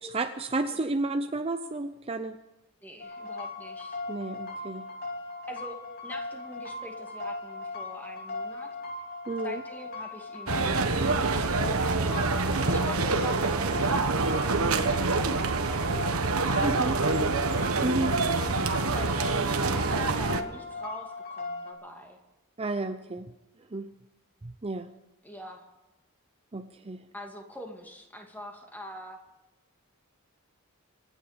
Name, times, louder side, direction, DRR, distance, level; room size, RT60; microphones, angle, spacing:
voice 1, 0.0-2.4 4.1-4.9 9.3-9.6 16.6-17.0 17.8-18.2 22.6-23.3 23.7-23.9 24.4-24.9 26.5-27.0, right 2 dB, 25° right, 8 dB, 0.6 m, -31 dB
voice 2, 2.8-4.0 5.5-5.8 6.0-8.7 9.4-12.0 12.5-17.4 18.3-18.7 18.9-22.2 25.2-25.6 27.1-29.2, equal, 10° left, 2 dB, 2.4 m, -44 dB
sound 1, 3.0-21.7, left 2 dB, 45° left, 2.9 m, -39 dB
sound 2, 10.5-20.4, right 3 dB, 75° right, 1.3 m, -26 dB
26.0 x 10.0 x 5.2 m, 1.0 s
head